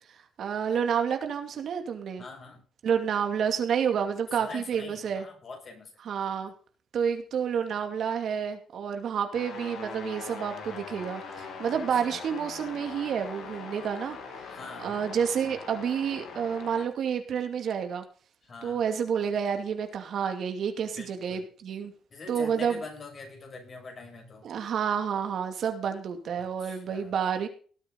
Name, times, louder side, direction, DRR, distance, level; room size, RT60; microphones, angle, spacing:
voice 1, 0.4-2.2 2.8-5.2 6.0-6.5 6.9-14.2 14.8-18.0 18.6-21.9 22.3-22.8 24.4-27.5, right 7 dB, 65° right, 6 dB, 2.5 m, -29 dB
voice 2, 2.2-2.6 4.4-5.9 12.0-12.2 14.5-15.0 18.4-18.8 21.0-21.4 22.1-24.5 26.4-27.1, left 3 dB, 45° left, 2 dB, 7.5 m, -44 dB
sound 1, 9.3-16.8, left 5 dB, 75° left, 7.8 m, -42 dB
19.0 x 8.8 x 4.0 m, 0.41 s
cardioid pair, 90°, 0 cm